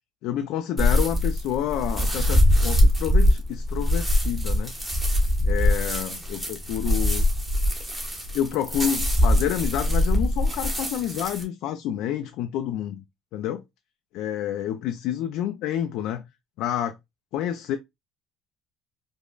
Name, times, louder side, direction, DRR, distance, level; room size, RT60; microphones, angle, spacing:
voice 1, 0.2-4.7 5.4-7.3 8.3-13.0 13.3-13.6 14.1-16.3 16.6-17.0 17.3-17.8, left 10 dB, 75° left, 0.3 m, -29 dB
sound 1, 0.8-11.4, left 1 dB, 10° right, 1.1 m, -22 dB
5.1 x 2.1 x 2.2 m
cardioid pair, 115°, 0 cm